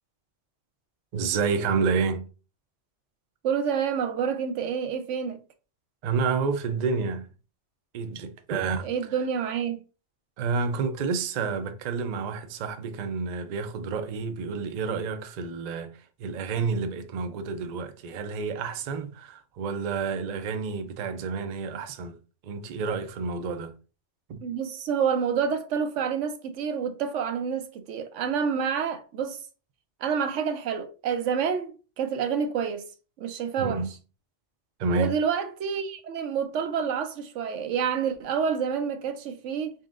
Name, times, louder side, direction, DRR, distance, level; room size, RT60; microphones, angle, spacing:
voice 1, 1.1-2.3 6.0-7.3 7.9-8.9 10.4-22.2 22.4-23.7 24.3-24.4 33.6-33.9 34.8-35.2, right 5 dB, 55° right, 0.5 m, -29 dB
voice 2, 3.4-5.4 8.8-9.8 24.4-29.4 30.0-32.9 33.2-33.8 34.9-39.7, right 7 dB, 85° right, 1.0 m, -28 dB
4.0 x 3.6 x 2.4 m
omnidirectional pair, 1.2 m